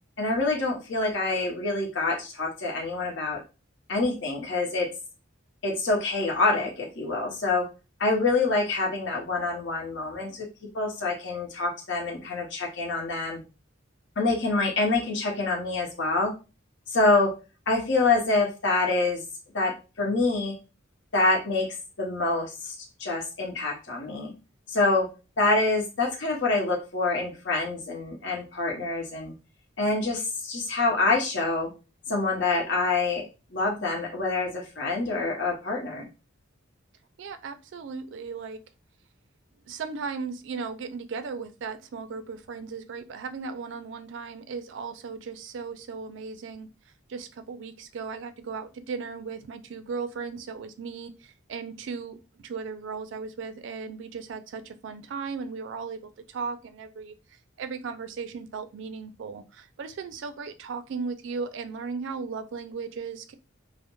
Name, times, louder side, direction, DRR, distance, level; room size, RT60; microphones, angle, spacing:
voice 1, 0.2-3.4 3.9-4.9 5.6-7.6 8.0-10.4 10.7-13.4 14.2-16.3 16.9-17.3 17.7-19.2 19.5-19.7 20.0-20.5 21.1-21.7 22.0-22.7 23.0-24.3 24.7-25.1 25.4-29.3 29.8-31.7 32.1-33.2 33.5-36.1, left 3 dB, 60° left, -1 dB, 0.7 m, -26 dB
voice 2, 37.2-38.6 39.7-46.7 47.1-63.3, right 5 dB, 65° right, 10 dB, 0.3 m, -36 dB
2.2 x 2.0 x 2.9 m, 0.31 s
head